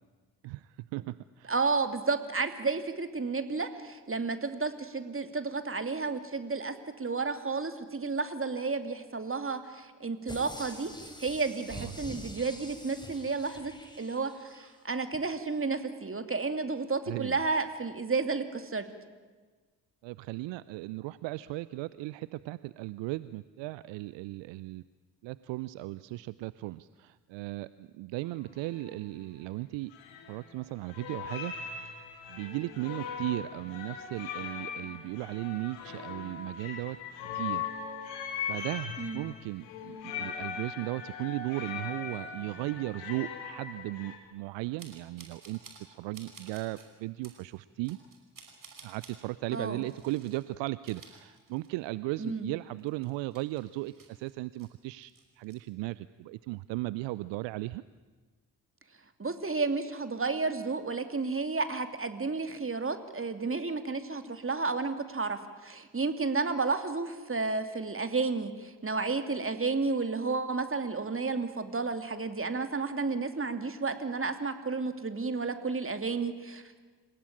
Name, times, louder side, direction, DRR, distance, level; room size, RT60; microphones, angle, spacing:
voice 1, 0.4-1.5 11.7-11.9 17.1-17.4 20.0-24.8 25.2-29.9 30.3-31.5 31.8-32.0 32.3-37.0 37.3-37.7 38.5-48.0 48.8-57.8, right 19 dB, 65° right, 17 dB, 0.7 m, -36 dB
voice 2, 1.5-10.9 11.2-13.7 14.0-18.9 39.0-39.2 49.5-49.8 52.2-52.5 59.2-76.8, right 4 dB, 25° right, 8 dB, 2.9 m, -32 dB
sound 1, 10.3-14.7 15.1-15.2, left 1 dB, 10° left, 5.9 m, -46 dB
sound 2, 28.3-28.4 28.6-29.0 29.9-30.6 30.9-44.2, left 7 dB, 75° left, 3.2 m, -40 dB
sound 3, 44.8-45.9 46.1-46.9 47.2-47.4 47.8-49.2 49.8-50.4 50.7-51.9 52.3-52.4 52.8-54.7 55.0-55.6, right 5 dB, 40° right, 5.7 m, -53 dB
28.0 x 17.5 x 8.9 m, 1.4 s
hypercardioid pair, 40°, 48 cm